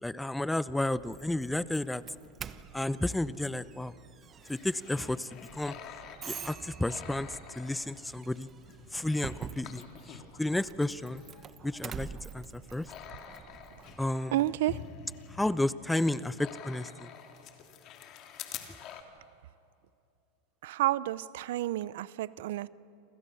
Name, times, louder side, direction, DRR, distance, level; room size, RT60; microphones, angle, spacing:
voice 1, 0.0-2.0 2.7-3.9 4.5-5.7 6.3-7.3 7.6-8.5 8.9-9.8 10.4-11.2 11.6-12.1 12.3-12.9 14.0-14.4 15.4-17.1, left 1 dB, 5° left, 17 dB, 0.7 m, -31 dB
Doorbell, 1.0-14.1, right 7 dB, 30° right, 1.0 m, -47 dB
sound 1, 4.3-10.4 10.8-19.0, left 8 dB, 45° left, 2.9 m, -48 dB
voice 2, 14.3-14.8 20.6-22.7, right 15 dB, 70° right, 19 dB, 0.6 m, -30 dB
28.0 x 27.5 x 7.0 m, 2.6 s
hypercardioid pair, 105°, 0 cm